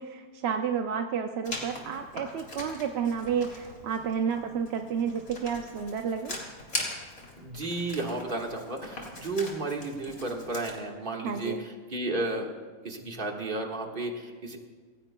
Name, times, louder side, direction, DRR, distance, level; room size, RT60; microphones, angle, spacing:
voice 1, 0.0-6.4 11.2-11.6, right 7 dB, 60° right, 5 dB, 0.7 m, -31 dB
Writing, 1.4-10.8, left 2 dB, 65° left, 2.9 m, -41 dB
voice 2, 7.4-12.5 12.8-14.6, right 2 dB, 35° right, 1 dB, 1.7 m, -33 dB
26.5 x 16.0 x 2.2 m, 1.5 s
omnidirectional pair, 1.6 m